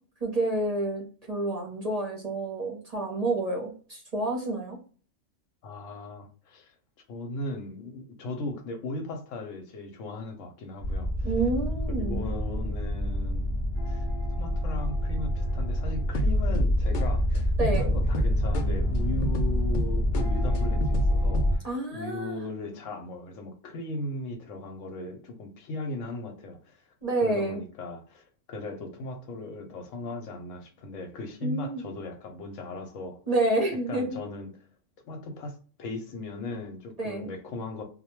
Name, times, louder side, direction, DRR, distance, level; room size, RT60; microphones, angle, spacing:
voice 1, 0.2-4.8 11.2-12.3 17.6-17.9 21.6-22.4 27.0-27.6 31.4-31.8 33.3-34.2 37.0-37.3, right 2 dB, 40° right, 0.6 m, -29 dB
voice 2, 5.6-6.7 7.1-11.3 12.0-13.6 13.9-14.1 14.4-26.8 27.2-33.2 33.9-34.5 35.0-37.8, left 2 dB, 85° left, 1.0 m, -38 dB
sound 1, 10.8-21.6, equal, 65° left, 0.5 m, -26 dB
2.2 x 2.1 x 2.9 m
omnidirectional pair, 1.3 m